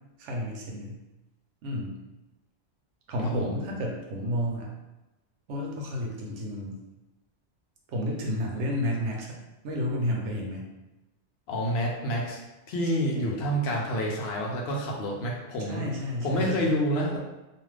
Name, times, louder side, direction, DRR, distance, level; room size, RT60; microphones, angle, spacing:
voice 1, 0.2-1.0 1.6-2.0 3.1-4.7 5.5-6.8 7.9-9.3 9.6-10.6 13.1-13.4 15.6-16.7, left 1 dB, 90° right, -1 dB, 1.0 m, -31 dB
voice 2, 3.2-3.6 11.5-12.4 12.7-15.8 16.2-17.2, equal, 65° left, -2 dB, 0.8 m, -28 dB
2.5 x 2.4 x 3.2 m, 1.0 s
omnidirectional pair, 1.2 m